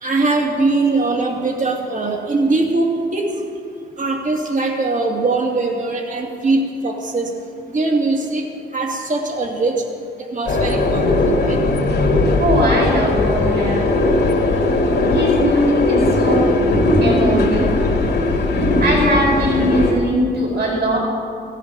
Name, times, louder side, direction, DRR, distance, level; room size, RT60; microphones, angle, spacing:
voice 1, 0.0-3.3 4.0-7.3 7.7-8.4 8.7-9.8 10.2-11.6 16.5-16.6, right 3 dB, 45° right, 1 dB, 2.5 m, -21 dB
sound 1, 10.5-19.9, left 2 dB, 65° left, 2.4 m, -18 dB
voice 2, 12.4-13.9 15.0-16.4 17.0-17.7 18.8-21.0, equal, 60° right, -1 dB, 4.6 m, -20 dB
15.0 x 10.0 x 7.1 m, 2.4 s
cardioid pair, 75°, 19 cm